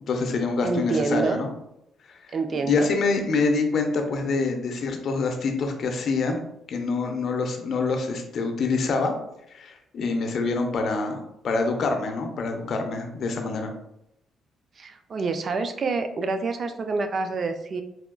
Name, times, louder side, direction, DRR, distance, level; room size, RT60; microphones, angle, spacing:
voice 1, 0.1-1.5 2.3-2.4 2.6-6.4 6.7-9.1 9.5-13.7, left 3 dB, 60° left, 4 dB, 0.5 m, -26 dB
voice 2, 0.6-1.4 2.3-2.9 14.8-17.8, right 4 dB, 45° right, 8 dB, 0.3 m, -27 dB
4.1 x 2.3 x 2.2 m, 0.81 s
cardioid pair, 90°, 0 cm